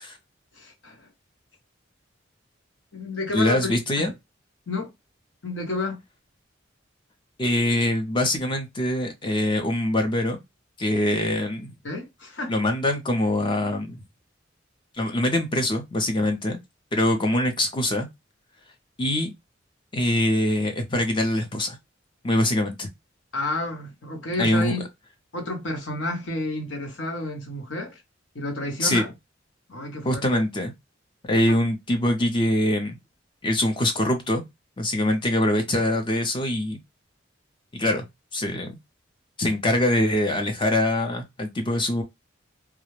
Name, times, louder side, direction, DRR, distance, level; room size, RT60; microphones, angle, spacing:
voice 1, 0.5-1.1 2.9-4.1 4.7-4.9 5.4-6.0 11.8-12.5 23.3-24.8 25.3-28.0 28.3-29.1 29.7-30.4, left 2 dB, 70° left, 0.9 m, -31 dB
voice 2, 3.3-4.1 7.4-10.4 10.8-11.7 12.5-14.0 14.9-16.6 16.9-18.1 19.0-19.3 19.9-21.8 22.2-22.9 24.4-24.8 28.8-29.0 30.0-30.7 31.3-33.0 33.4-34.4 34.8-36.8 37.7-38.1 38.3-38.8 39.4-42.0, left 1 dB, 25° left, 0.5 m, -23 dB
2.3 x 2.0 x 3.1 m
head